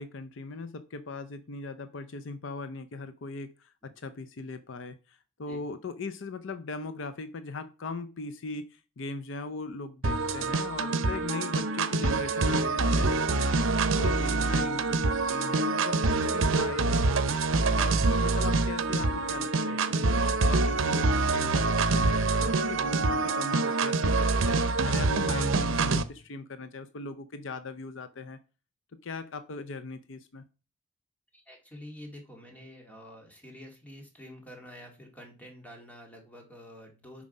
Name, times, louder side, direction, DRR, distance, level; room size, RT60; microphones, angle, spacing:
voice 1, 0.0-17.2 17.7-20.1 20.4-28.4 28.9-30.4, left 3 dB, 70° left, 11 dB, 0.6 m, -39 dB
sound 1, 10.0-26.0, right 3 dB, 90° right, 0.7 m, -26 dB
voice 2, 31.3-37.2, equal, 10° left, 1 dB, 2.0 m, -48 dB
7.2 x 4.9 x 5.4 m, 0.33 s
head